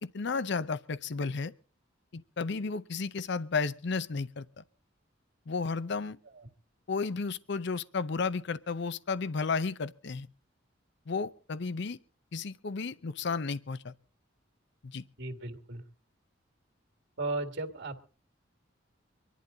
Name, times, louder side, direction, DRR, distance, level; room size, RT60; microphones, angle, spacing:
voice 1, 0.0-1.5 2.1-4.6 5.5-6.2 6.9-10.3 11.1-12.0 12.3-13.9 14.8-15.0, left 4 dB, 65° left, 0.6 m, -33 dB
voice 2, 15.2-15.8 17.2-18.0, right 2 dB, 65° right, 2.0 m, -35 dB
25.0 x 11.0 x 3.9 m
head